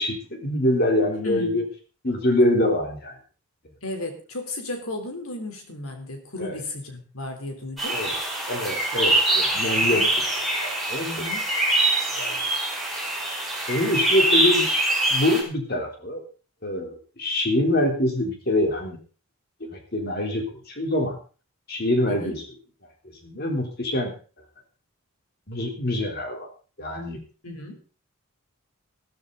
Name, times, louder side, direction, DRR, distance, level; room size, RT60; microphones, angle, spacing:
voice 1, 0.0-1.7 2.0-3.2 6.4-6.6 7.9-8.1 8.5-10.0 10.6-11.1 11.9-12.6 13.7-14.7 15.1-16.2 16.6-19.0 19.7-21.2 21.7-22.4 23.2-24.1 25.5-26.5 26.8-27.2, left 1 dB, 50° left, 2 dB, 3.6 m, -25 dB
voice 2, 1.2-1.6 3.8-8.0 9.8-10.1 11.0-11.5 22.1-22.4 27.4-27.8, left 2 dB, 85° left, 4 dB, 3.6 m, -34 dB
sound 1, 7.8-15.4, right 1 dB, ahead, 4.6 m, -24 dB
14.5 x 13.5 x 4.0 m, 0.37 s
head